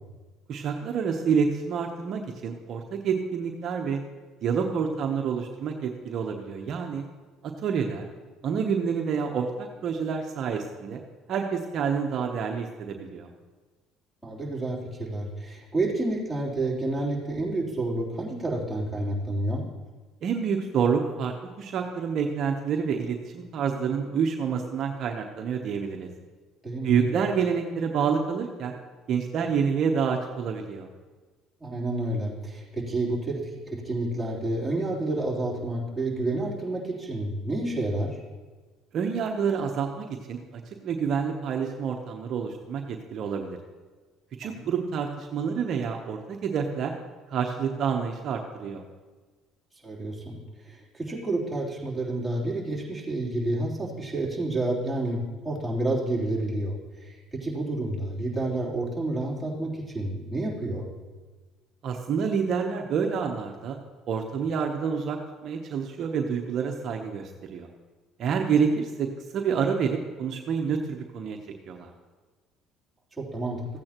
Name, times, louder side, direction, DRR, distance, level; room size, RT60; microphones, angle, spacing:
voice 1, 0.5-4.0 4.4-7.0 7.6-8.1 8.4-11.0 11.3-13.3 20.2-26.1 26.8-28.7 29.1-30.9 38.9-43.6 44.4-46.9 47.3-48.8 61.8-63.8 64.1-67.7 68.2-69.1 69.3-71.4 71.7-71.9, right 6 dB, 55° right, 3 dB, 0.9 m, -28 dB
voice 2, 14.2-19.7 26.6-27.0 31.6-33.4 33.7-38.2 44.4-44.7 49.8-50.4 50.7-60.9 73.2-73.6, right 2 dB, 5° right, -7 dB, 3.4 m, -29 dB
15.0 x 8.7 x 3.0 m, 1.3 s
supercardioid pair, 85°, 0 cm